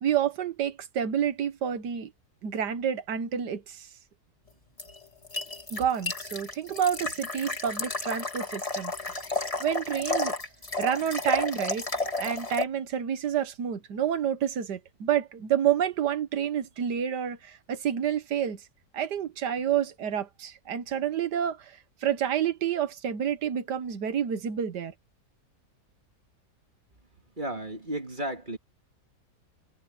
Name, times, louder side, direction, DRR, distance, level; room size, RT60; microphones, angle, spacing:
voice 1, 0.0-2.1 2.4-3.9 5.7-8.9 9.6-10.4 10.8-11.9 12.2-18.6 18.9-21.7 22.0-24.9, right 9 dB, 90° right, 1.8 m, -29 dB
sound 1, 4.8-12.6, left 2 dB, 20° left, 2.2 m, -32 dB
voice 2, 27.4-28.6, right 1 dB, 30° right, 2.4 m, -33 dB
omnidirectional pair, 1.8 m